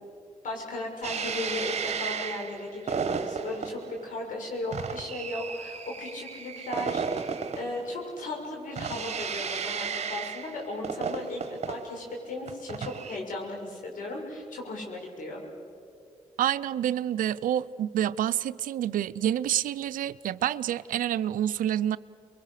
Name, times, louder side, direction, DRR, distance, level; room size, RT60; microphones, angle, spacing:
voice 1, 0.4-15.4, left 2 dB, 70° left, 0 dB, 6.6 m, -36 dB
sound 1, 1.0-13.2, right 6 dB, 50° right, 1.3 m, -34 dB
voice 2, 16.4-22.0, right 11 dB, 75° right, 16 dB, 0.5 m, -28 dB
30.0 x 22.5 x 6.6 m, 2.4 s
supercardioid pair, 60°, 14 cm